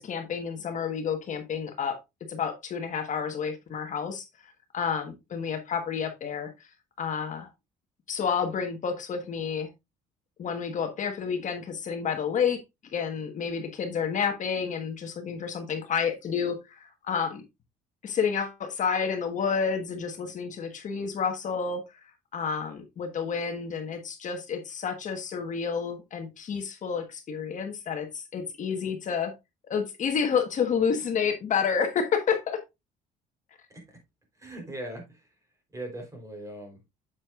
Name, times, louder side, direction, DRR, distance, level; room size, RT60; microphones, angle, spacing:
voice 1, 0.0-2.0 2.3-4.2 4.7-6.5 7.0-7.5 8.1-9.7 10.4-12.6 12.9-17.4 18.0-21.8 22.3-29.3 29.7-32.6, left 6 dB, 50° left, 1.3 m, -29 dB
voice 2, 34.4-35.3 35.7-36.8, right 1 dB, 20° right, 3.5 m, -40 dB
7.5 x 7.4 x 2.4 m
cardioid pair, 110°, 17 cm